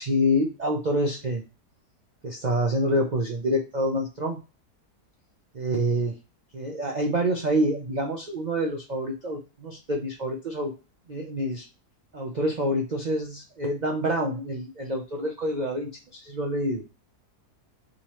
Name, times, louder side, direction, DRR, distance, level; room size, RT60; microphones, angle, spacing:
voice 1, 0.0-1.4 2.2-4.4 5.5-6.1 6.5-10.7 11.1-11.6 12.1-16.8, equal, 80° right, 1 dB, 0.4 m, -27 dB
3.7 x 2.8 x 2.9 m, 0.31 s
omnidirectional pair, 1.7 m